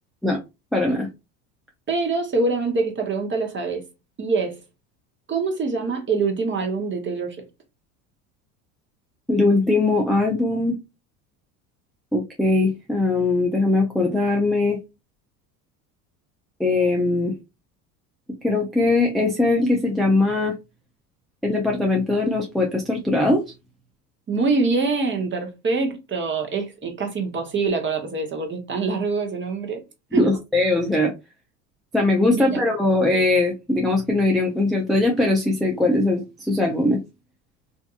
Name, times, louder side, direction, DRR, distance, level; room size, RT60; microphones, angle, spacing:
voice 1, 0.7-1.1 9.3-10.7 12.1-14.8 16.6-17.3 18.4-20.5 21.4-23.4 30.1-31.1 31.9-37.0, left 2 dB, ahead, 0.4 m, -20 dB
voice 2, 1.9-3.8 4.2-4.6 5.3-7.4 24.3-29.8 30.1-30.3 32.3-32.6, right 4 dB, 25° right, 0.9 m, -24 dB
2.6 x 2.5 x 2.4 m
hypercardioid pair, 90°, 43 cm